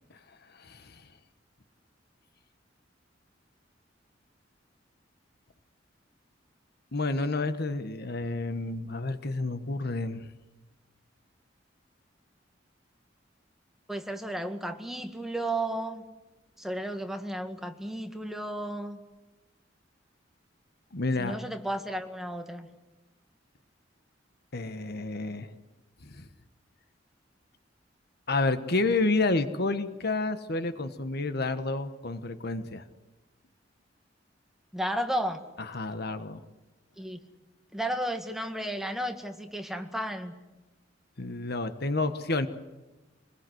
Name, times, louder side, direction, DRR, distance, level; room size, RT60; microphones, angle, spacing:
voice 1, 0.6-1.0 6.9-10.3 20.9-21.4 24.5-25.5 26.0-26.2 28.3-32.8 35.7-36.4 41.2-42.5, left 3 dB, 60° left, 10 dB, 1.4 m, -30 dB
voice 2, 13.9-16.0 16.6-19.0 21.2-22.7 34.7-35.4 37.0-37.2 37.7-40.3, right 1 dB, ahead, 5 dB, 1.9 m, -33 dB
26.0 x 21.0 x 8.0 m, 1.1 s
head